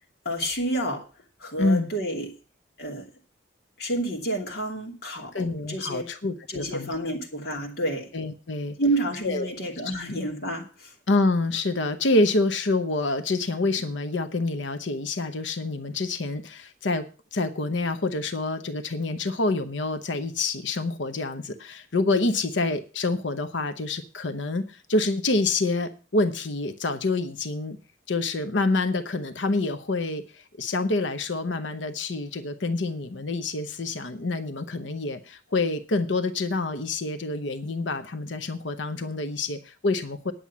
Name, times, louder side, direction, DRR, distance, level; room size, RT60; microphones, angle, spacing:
voice 1, 0.2-1.0 1.4-2.3 2.8-3.1 3.8-6.0 6.5-8.1 8.8-10.9, right 1 dB, 55° left, -1 dB, 2.7 m, -29 dB
voice 2, 1.6-1.9 5.3-6.9 8.1-8.8 9.2-9.5 9.8-9.9 11.1-17.0 17.3-27.8 28.1-40.3, left 2 dB, 70° left, 10 dB, 0.9 m, -27 dB
10.0 x 7.1 x 7.3 m, 0.35 s
head